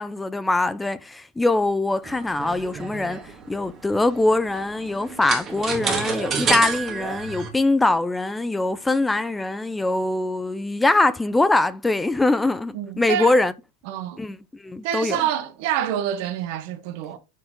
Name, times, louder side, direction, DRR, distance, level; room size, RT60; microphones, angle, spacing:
voice 1, 0.0-13.5 14.2-14.4 14.6-15.2, left 2 dB, 5° left, 0.3 m, -22 dB
sound 1, 2.0-7.5, right 5 dB, 25° right, 1.6 m, -29 dB
voice 2, 12.7-13.3 13.9-14.2 14.8-17.2, right 10 dB, 55° right, 1.0 m, -27 dB
6.4 x 4.7 x 3.6 m
supercardioid pair, 150°, 0 cm